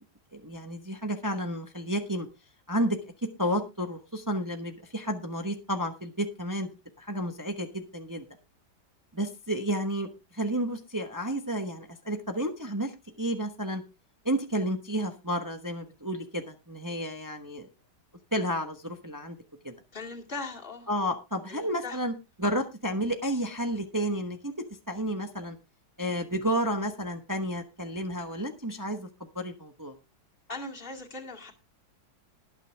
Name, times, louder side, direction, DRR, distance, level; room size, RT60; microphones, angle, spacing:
voice 1, 0.3-2.3 2.7-3.0 3.4-6.7 7.0-8.3 9.1-10.1 10.3-12.9 13.2-13.8 14.2-17.7 18.3-19.4 19.6-19.7 20.9-22.1 22.4-24.5 24.9-25.6 26.0-29.1 29.3-29.9, equal, 15° right, 6 dB, 0.9 m, -31 dB
voice 2, 19.9-20.9 21.5-22.0 30.5-31.5, left 3 dB, 30° left, 1 dB, 2.4 m, -39 dB
20.0 x 6.7 x 3.4 m, 0.27 s
omnidirectional pair, 1.9 m